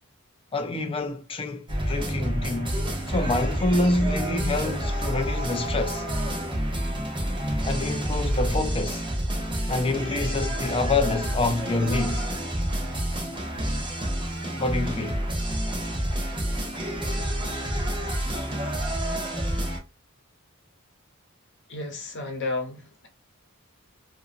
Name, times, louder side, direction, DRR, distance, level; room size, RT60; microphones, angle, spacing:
voice 1, 0.5-2.8 3.1-6.0 7.6-9.1 9.7-12.3 14.5-15.2, left 2 dB, 25° left, 0.4 m, -27 dB
sound 1, 1.7-19.8, right 1 dB, 20° right, 0.8 m, -28 dB
voice 2, 21.7-23.1, left 2 dB, 55° left, 1.0 m, -32 dB
2.7 x 2.6 x 2.4 m
head